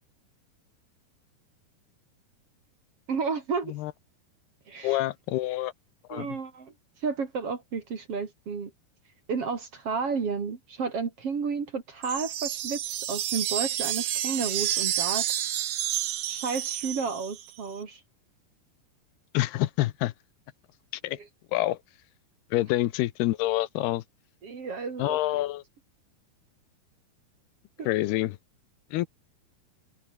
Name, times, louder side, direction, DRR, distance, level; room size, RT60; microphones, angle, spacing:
voice 1, 3.1-3.7 4.7-5.0 6.1-6.7 7.0-8.7 9.3-12.8 13.1-15.3 16.3-18.0 24.4-25.4 27.8-27.9, right 5 dB, 40° right, 3.0 m, -32 dB
voice 2, 4.8-5.7 6.1-6.4 19.3-20.1 21.0-21.2 21.5-21.8 22.5-24.0 25.0-25.6 27.9-28.4 28.9-29.1, left 16 dB, 80° left, 2.9 m, -27 dB
sound 1, 12.0-17.5, right 12 dB, 65° right, 1.9 m, -30 dB
omnidirectional pair, 4.6 m